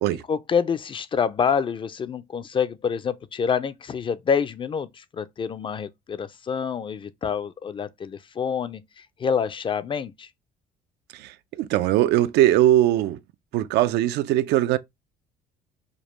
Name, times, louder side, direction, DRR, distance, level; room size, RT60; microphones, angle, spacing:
voice 1, 0.3-10.3, left 6 dB, 30° left, 0.4 m, -27 dB
voice 2, 11.1-13.2 13.5-14.8, right 13 dB, 80° right, 0.4 m, -20 dB
5.1 x 2.1 x 3.0 m
cardioid pair, 110°, 17 cm